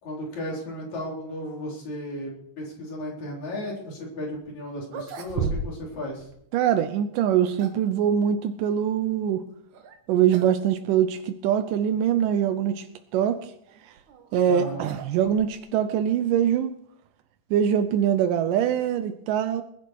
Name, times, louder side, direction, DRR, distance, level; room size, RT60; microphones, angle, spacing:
voice 1, 0.0-6.3 14.5-14.9, left 1 dB, 60° left, -2 dB, 5.3 m, -34 dB
sound 1, 4.3-4.4 4.8-6.0 6.2-6.3 7.2-7.9 9.7-10.0 10.3-10.6 10.9-11.0 11.8-11.9 13.7-15.8, right 5 dB, 70° right, 2.8 m, -35 dB
voice 2, 6.5-9.4 10.1-12.9 13.1-13.5 14.3-16.7 17.5-19.6, right 9 dB, 85° right, 8 dB, 2.4 m, -23 dB
20.5 x 11.0 x 4.7 m, 0.73 s
omnidirectional pair, 3.7 m